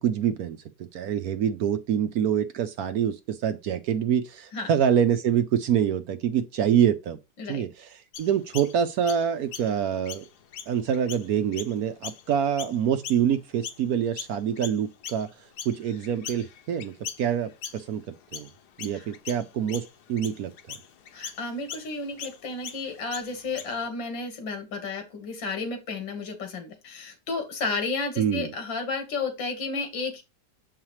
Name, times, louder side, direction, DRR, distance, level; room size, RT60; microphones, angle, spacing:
voice 1, 0.0-7.2 7.5-7.9 8.2-10.2 10.7-15.3 15.6-16.9 17.2-18.0 18.3-18.5 18.8-20.8 28.2-28.5, right 8 dB, 65° right, 1.0 m, -26 dB
Chirp tweet, 8.1-13.9 14.2-23.9, left 8 dB, 70° left, 1.3 m, -41 dB
voice 2, 21.1-30.2, left 3 dB, 90° left, 2.3 m, -32 dB
7.4 x 4.8 x 3.1 m
omnidirectional pair, 2.0 m